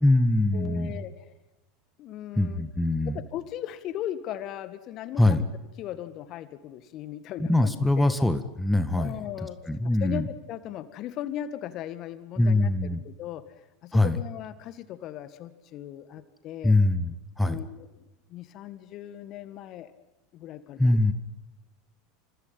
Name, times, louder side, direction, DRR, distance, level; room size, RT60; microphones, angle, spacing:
voice 1, 0.0-0.9 2.4-3.2 5.2-5.4 7.5-9.2 9.7-10.3 12.4-13.0 13.9-14.2 16.6-17.6 20.8-21.1, left 2 dB, 5° left, 10 dB, 1.9 m, -23 dB
voice 2, 0.5-1.3 2.0-2.6 3.1-5.5 5.8-8.1 9.0-9.6 9.8-13.4 13.8-16.7 17.4-19.9 20.3-21.0, left 11 dB, 45° left, 12 dB, 2.0 m, -38 dB
27.5 x 26.0 x 5.8 m, 0.99 s
figure-of-eight pair, 80°, 0 cm